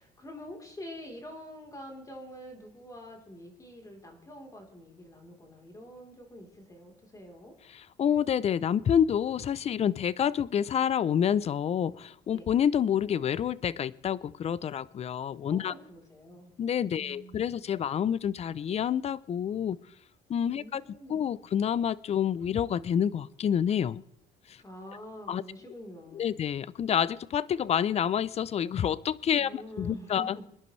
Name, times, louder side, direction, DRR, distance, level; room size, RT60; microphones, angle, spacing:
voice 1, 0.0-7.6 12.3-12.4 15.5-16.5 16.9-17.6 20.5-21.2 24.6-26.5 29.3-30.3, equal, 20° left, 2 dB, 3.7 m, -46 dB
voice 2, 7.7-15.7 16.6-19.8 20.3-20.8 21.1-24.0 24.5-24.6 25.3-25.4 26.1-30.5, left 8 dB, 40° left, 20 dB, 0.5 m, -28 dB
25.0 x 10.5 x 3.2 m, 0.75 s
cardioid pair, 110°, 17 cm